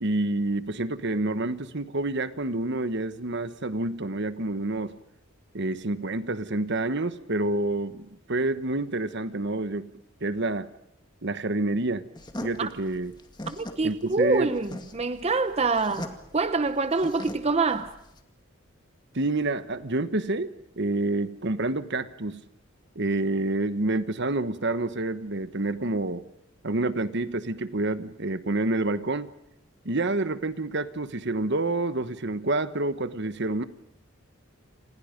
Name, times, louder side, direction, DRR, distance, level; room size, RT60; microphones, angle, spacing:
voice 1, 0.0-5.0 5.5-9.9 10.2-10.7 11.2-12.1 12.4-13.1 13.8-14.5 19.1-22.4 22.9-26.2 26.6-29.3 29.8-33.6, right 2 dB, 55° right, 1.3 m, -28 dB
sound 1, 12.2-18.2, left 1 dB, 20° left, 2.1 m, -40 dB
voice 2, 13.5-17.9, right 3 dB, 30° right, 0.8 m, -26 dB
29.5 x 27.5 x 5.3 m
head